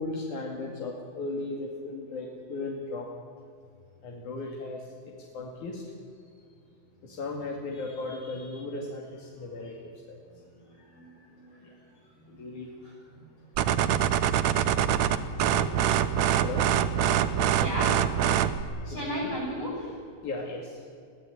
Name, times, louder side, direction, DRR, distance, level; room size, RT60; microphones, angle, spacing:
voice 1, 0.0-3.1 4.0-5.8 7.0-10.2 11.6-11.7 12.3-12.7 13.8-14.2 15.4-15.5 16.4-17.1 18.9-19.4 20.2-20.8, left 2 dB, 75° left, -1 dB, 3.8 m, -37 dB
voice 2, 11.4-11.7 12.8-13.2 17.5-17.9 18.8-19.9, equal, 50° left, -8 dB, 9.0 m, -34 dB
sound 1, 13.6-18.6, right 10 dB, 70° right, 2.0 m, -24 dB
23.0 x 16.0 x 9.9 m, 2.3 s
omnidirectional pair, 3.6 m